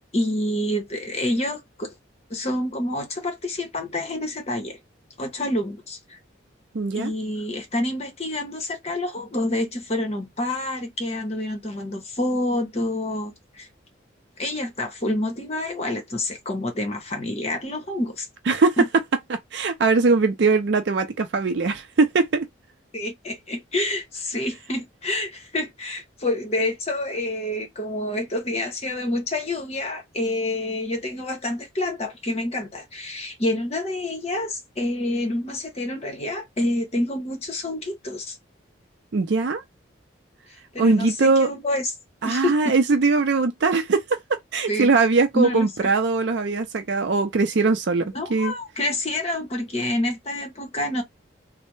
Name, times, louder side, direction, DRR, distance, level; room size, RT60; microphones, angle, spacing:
voice 1, 0.1-1.9 2.3-4.8 5.2-6.2 6.9-13.7 14.4-18.3 18.8-18.9 22.9-38.4 40.7-41.9 42.2-42.8 44.7-44.9 45.3-45.9 48.1-51.0, left 1 dB, 30° left, 0.9 m, -28 dB
voice 2, 6.7-7.1 18.5-18.8 19.3-22.5 39.1-39.6 40.8-41.5 42.2-44.2 44.5-48.5, right 4 dB, 60° right, 0.4 m, -21 dB
3.2 x 2.0 x 3.1 m
head